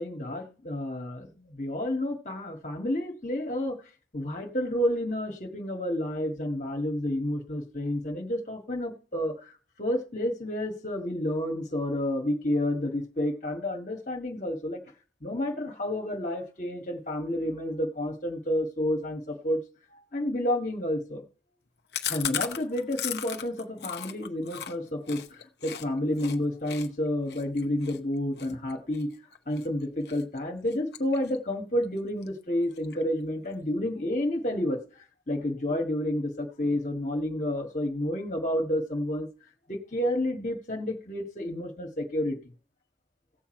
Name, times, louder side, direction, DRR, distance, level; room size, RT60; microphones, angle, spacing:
voice 1, 0.0-3.8 4.1-9.3 9.8-14.8 15.2-19.6 20.1-21.2 22.1-29.1 29.5-34.8 35.3-39.3 39.7-42.4, left 1 dB, 40° left, 3 dB, 1.8 m, -30 dB
Chewing mastication, 21.9-25.8 26.2-26.4 26.7-29.7 30.1-30.4 30.7-31.5 31.8-31.9 32.2-32.3 32.6-33.2, left 9 dB, 65° left, 0.8 m, -36 dB
17.0 x 7.3 x 4.5 m, 0.38 s
head